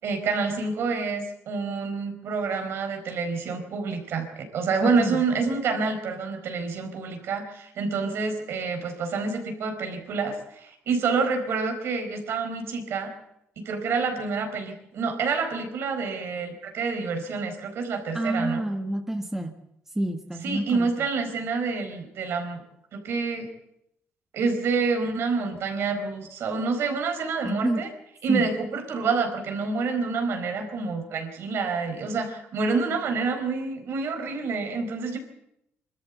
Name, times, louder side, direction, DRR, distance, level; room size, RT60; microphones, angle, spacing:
voice 1, 0.0-13.1 13.6-18.6 20.4-22.6 22.9-23.5 24.3-27.9 28.2-35.2, right 4 dB, 65° right, 5 dB, 4.3 m, -28 dB
voice 2, 4.8-5.2 18.1-19.5 19.9-20.9 27.4-27.8 28.3-28.5, right 1 dB, 10° right, 4 dB, 1.5 m, -28 dB
23.5 x 13.5 x 8.3 m, 0.80 s
cardioid pair, 115°, 5 cm